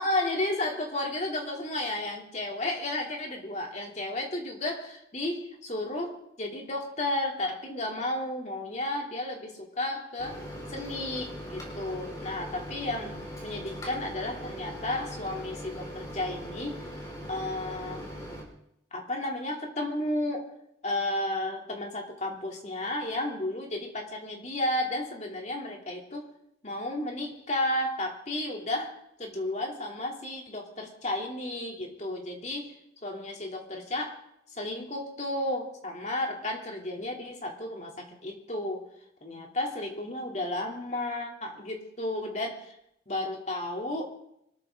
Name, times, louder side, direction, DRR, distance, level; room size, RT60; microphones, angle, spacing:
voice 1, 0.0-10.4 10.7-16.8 17.3-18.2 18.9-20.5 20.8-26.3 26.6-32.7 33.0-34.2 34.5-38.8 39.2-42.7 43.1-44.0, left 1 dB, 40° left, 1 dB, 3.1 m, -33 dB
Microwave oven, 10.2-18.4, equal, 20° left, 4.7 m, -40 dB
25.0 x 13.5 x 3.8 m, 0.76 s
head